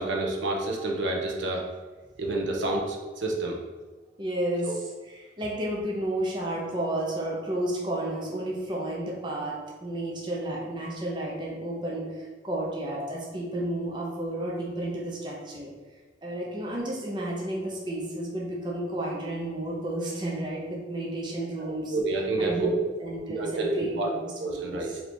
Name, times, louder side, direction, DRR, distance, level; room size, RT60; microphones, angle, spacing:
voice 1, 0.0-1.6 2.2-3.6 4.7-4.8 21.6-22.8 23.3-24.1 24.4-24.9, right 2 dB, 75° right, 0 dB, 0.6 m, -29 dB
voice 2, 4.2-15.7 16.2-22.0 22.4-22.7 23.0-25.0, right 1 dB, 25° right, -3 dB, 0.6 m, -32 dB
3.3 x 2.9 x 4.2 m, 1.3 s
head